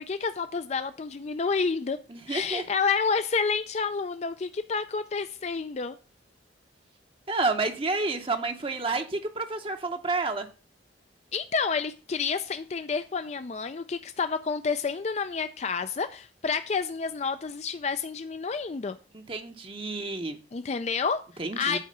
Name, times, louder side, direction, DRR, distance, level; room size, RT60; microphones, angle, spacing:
voice 1, 0.0-2.0 2.3-6.0 11.3-19.0 20.5-21.2 21.6-21.8, left 5 dB, 35° left, 0.4 m, -29 dB
voice 2, 2.1-2.6 7.3-10.5 19.1-20.4 21.4-21.8, right 3 dB, 30° right, 0.7 m, -30 dB
8.4 x 4.7 x 6.6 m
head